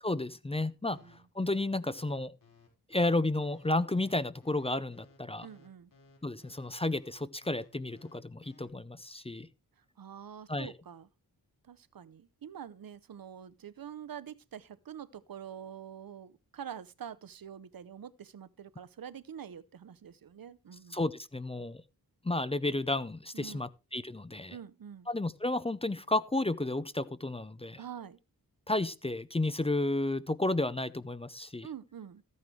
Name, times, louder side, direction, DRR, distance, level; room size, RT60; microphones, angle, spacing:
voice 1, 0.0-1.0 1.4-2.3 2.9-5.5 6.2-9.5 10.5-10.7 20.9-21.8 22.2-24.6 25.1-27.8 28.7-31.7, left 2 dB, 15° left, 0.5 m, -32 dB
sound 1, 0.9-8.7, left 3 dB, 60° left, 5.1 m, -59 dB
voice 2, 5.4-5.9 10.0-11.1 11.6-21.0 23.3-23.7 24.5-25.1 27.8-28.2 31.6-32.2, right 9 dB, 70° right, 0.8 m, -46 dB
13.5 x 9.5 x 3.2 m
wide cardioid pair, 110°, 37 cm